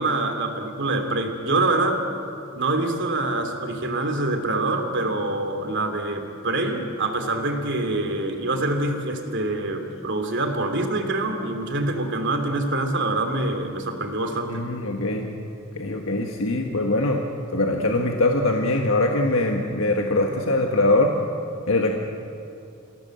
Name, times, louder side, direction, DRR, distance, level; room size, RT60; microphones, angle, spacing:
voice 1, 0.0-2.0 2.5-14.7, right 2 dB, 60° right, 5 dB, 3.0 m, -25 dB
voice 2, 14.5-15.3 15.7-17.2 17.5-21.1 21.7-21.9, left 2 dB, 70° left, 2 dB, 1.6 m, -22 dB
27.5 x 17.0 x 7.8 m, 2.7 s
head